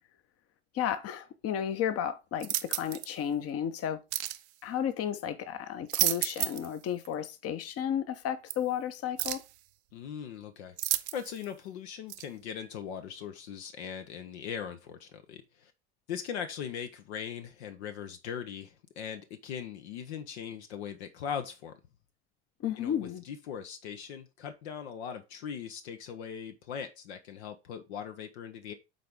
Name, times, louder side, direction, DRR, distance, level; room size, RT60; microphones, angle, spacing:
voice 1, 0.7-4.0 4.6-9.4 22.6-23.2, left 9 dB, 45° left, 1.0 m, -33 dB
sound 1, 2.4-3.1 4.1-4.4 5.7-6.7 7.0-7.1 8.5-8.6 9.2-9.5 10.8-11.4 12.1-12.2, right 15 dB, 70° right, 0.7 m, -31 dB
voice 2, 9.9-15.7 16.1-21.8 22.8-28.7, left 8 dB, 70° left, 0.9 m, -40 dB
7.5 x 4.1 x 3.6 m
hypercardioid pair, 70°, 34 cm